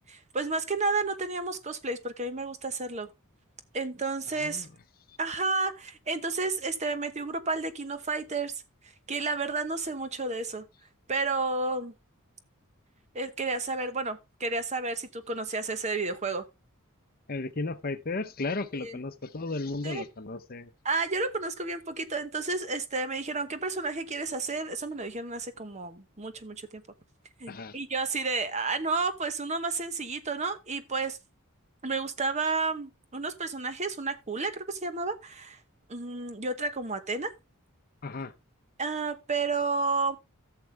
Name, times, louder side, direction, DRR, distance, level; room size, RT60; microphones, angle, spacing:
voice 1, 0.0-3.1 3.7-4.7 5.2-8.5 9.1-10.6 11.1-11.9 13.1-16.5 18.8-18.9 19.8-20.0 20.8-26.8 27.4-31.2 31.8-35.6 35.9-37.3 38.8-40.2, right 3 dB, 30° right, 0.9 m, -31 dB
voice 2, 4.3-4.7 5.1-5.2 17.3-20.7 27.5-27.8 38.0-38.3, left 3 dB, 40° left, 0.7 m, -34 dB
15.0 x 6.8 x 3.4 m
head